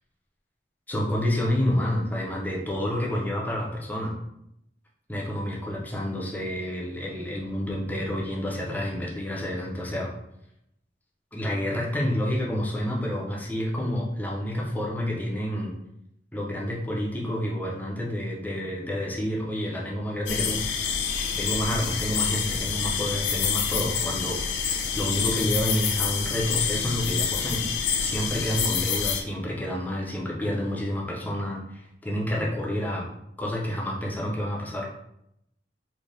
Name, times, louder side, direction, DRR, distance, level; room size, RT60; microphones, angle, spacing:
voice 1, 0.9-4.1 5.1-10.1 11.3-15.7 16.3-20.6 21.4-27.6 28.0-33.1 33.4-34.9, equal, 10° left, -3 dB, 0.4 m, -29 dB
sound 1, 20.3-29.2, left 6 dB, 75° left, 0.3 m, -27 dB
3.2 x 2.1 x 2.5 m, 0.80 s
head